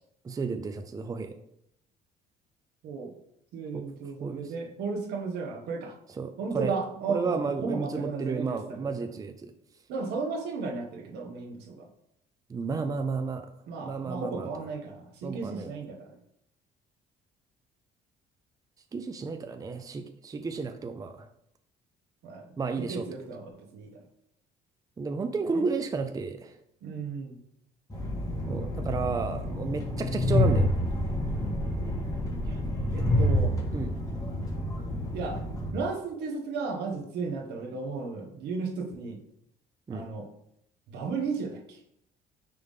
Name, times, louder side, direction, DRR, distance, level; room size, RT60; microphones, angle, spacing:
voice 1, 0.2-1.4 3.7-3.8 4.2-4.5 6.2-6.7 7.1-9.5 12.5-13.5 13.8-14.5 15.2-15.7 18.9-21.3 22.6-23.0 25.0-26.5 28.5-30.7 33.7-33.9 39.9-40.1, right 4 dB, 20° right, 8 dB, 0.5 m, -32 dB
voice 2, 3.5-6.0 6.4-8.9 9.9-11.9 13.7-16.2 22.2-22.5 22.8-23.9 25.5-25.7 26.8-27.4 31.3-31.6 32.5-32.6 32.9-33.6 35.1-35.4 35.7-39.2 39.9-40.3 40.9-41.8, right 4 dB, 80° right, 3 dB, 1.4 m, -34 dB
Train, 27.9-35.7, left 1 dB, 20° left, 1.6 m, -28 dB
9.3 x 3.5 x 3.7 m, 0.75 s
cardioid pair, 110°, 17 cm